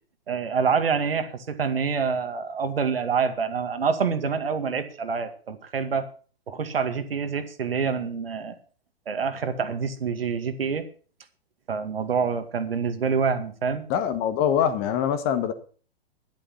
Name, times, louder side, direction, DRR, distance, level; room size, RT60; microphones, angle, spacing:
voice 1, 0.3-6.1 6.5-8.6 9.1-10.9 11.7-13.8, right 6 dB, 65° right, 9 dB, 2.1 m, -26 dB
voice 2, 13.9-15.5, left 8 dB, 30° left, 10 dB, 1.6 m, -24 dB
11.5 x 11.0 x 5.8 m, 0.39 s
figure-of-eight pair, 115°, 31 cm